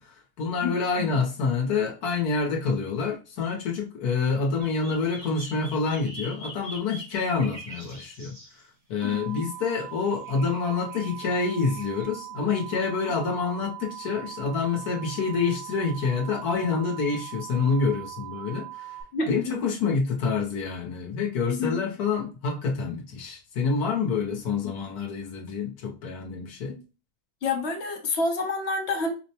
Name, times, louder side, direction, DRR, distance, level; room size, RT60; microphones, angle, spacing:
voice 1, 0.0-8.4 8.9-19.0 19.3-26.8, left 4 dB, 80° left, 1.4 m, -27 dB
voice 2, 0.6-1.1 9.0-9.4 19.1-19.6 21.4-21.8 24.6-24.7 27.4-29.1, left 3 dB, 50° left, 1.0 m, -29 dB
sound 1, 4.6-8.6 9.8-9.9 10.2-12.0, right 1 dB, 60° right, 2.4 m, -44 dB
sound 2, 9.0-19.0, right 15 dB, 75° right, 1.3 m, -40 dB
5.0 x 2.1 x 2.8 m
omnidirectional pair, 1.6 m